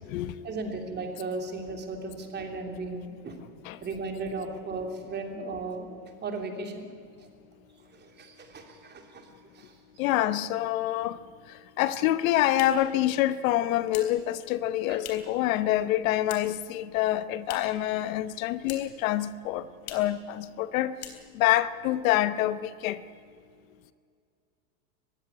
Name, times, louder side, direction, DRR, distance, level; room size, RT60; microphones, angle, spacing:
voice 1, 0.1-3.4 3.8-6.9 7.2-7.3 7.9-9.3 9.5-9.7 14.9-15.0, right 3 dB, 20° right, 3.1 m, -36 dB
voice 2, 10.0-11.2 11.8-20.9 21.3-23.0, left 13 dB, 60° left, 1.0 m, -26 dB
sound 1, 12.6-15.5 15.7-16.7 17.0-17.9 18.2-19.1 19.4-19.5 19.8-20.2 20.5-20.7 20.9-21.6, left 9 dB, 75° left, 3.7 m, -45 dB
21.5 x 15.5 x 9.8 m
supercardioid pair, 135°, 47 cm